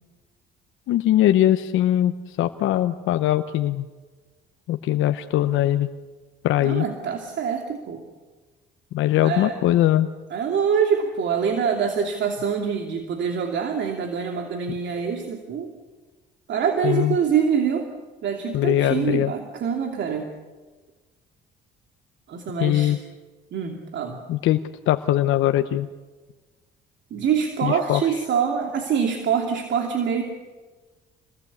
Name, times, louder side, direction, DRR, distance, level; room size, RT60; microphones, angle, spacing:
voice 1, 0.9-3.9 4.7-5.9 6.4-6.8 8.9-10.1 16.8-17.2 18.5-19.3 22.6-23.0 24.3-25.9 27.6-28.0, left 13 dB, 75° left, 8 dB, 1.0 m, -21 dB
voice 2, 6.6-8.0 9.2-9.6 10.3-15.7 16.5-17.9 18.2-20.3 22.3-22.9 23.5-24.2 27.1-30.2, right 7 dB, 65° right, 3 dB, 2.7 m, -25 dB
27.5 x 20.0 x 8.3 m, 1.3 s
supercardioid pair, 75°, 21 cm